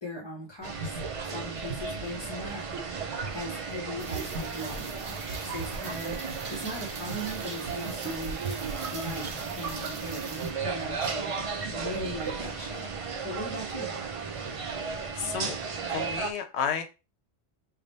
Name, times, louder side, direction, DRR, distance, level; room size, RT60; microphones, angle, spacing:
voice 1, 0.0-2.6 3.3-8.4 8.9-11.3 11.7-12.9 13.2-13.9, equal, 30° left, -3 dB, 0.6 m, -39 dB
sound 1, 0.6-16.3, right 5 dB, 45° right, 0.4 m, -35 dB
sound 2, 0.7-12.8, right 4 dB, 85° right, 1.0 m, -41 dB
Rain, 4.0-10.5, right 4 dB, 60° right, 0.9 m, -43 dB
voice 2, 14.8-15.6 15.9-16.8, left 7 dB, 75° left, 7 dB, 0.9 m, -32 dB
3.5 x 2.2 x 3.9 m, 0.29 s
omnidirectional pair, 1.1 m